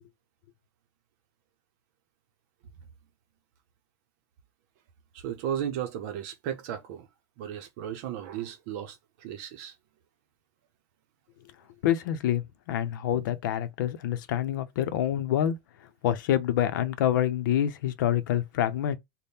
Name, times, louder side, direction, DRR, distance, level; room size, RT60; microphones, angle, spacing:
voice 1, 5.1-7.1 7.4-9.7, right 9 dB, 55° right, 0.7 m, -35 dB
voice 2, 11.8-12.4 12.7-15.6 16.0-19.0, left 11 dB, 85° left, 0.6 m, -26 dB
3.5 x 2.1 x 4.1 m
supercardioid pair, 155°, 10 cm